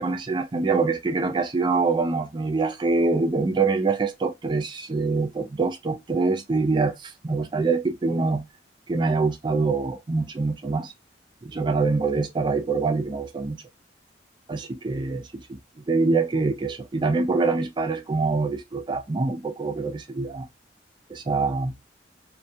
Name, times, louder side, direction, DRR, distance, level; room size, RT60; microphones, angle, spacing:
voice 1, 0.0-8.5 8.9-10.9 11.4-13.6 14.5-15.4 15.9-20.5 21.1-21.7, right 3 dB, 25° right, 0.4 m, -25 dB
2.2 x 2.2 x 2.6 m
head